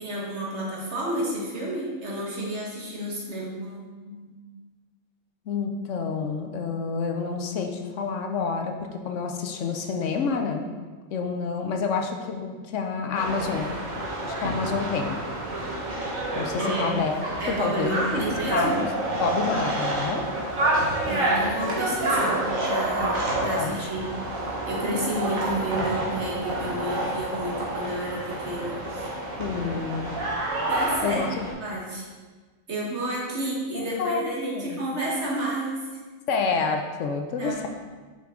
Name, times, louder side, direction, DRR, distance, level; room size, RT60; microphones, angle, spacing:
voice 1, 0.0-4.4 16.6-16.9 17.4-18.9 21.1-24.2 24.7-29.1 30.7-31.3 31.6-32.1 32.7-35.8 37.4-37.7, right 1 dB, 55° right, -4 dB, 1.7 m, -30 dB
voice 2, 5.5-10.7 11.1-13.7 14.2-15.2 16.3-17.2 17.6-18.2 18.5-18.8 19.2-20.2 23.4-23.7 29.4-30.2 31.0-31.3 33.7-34.8 36.3-37.7, left 5 dB, 70° left, 4 dB, 1.0 m, -28 dB
sound 1, 13.1-31.5, right 1 dB, 85° right, 1.8 m, -28 dB
5.9 x 5.6 x 3.7 m, 1.4 s
omnidirectional pair, 1.4 m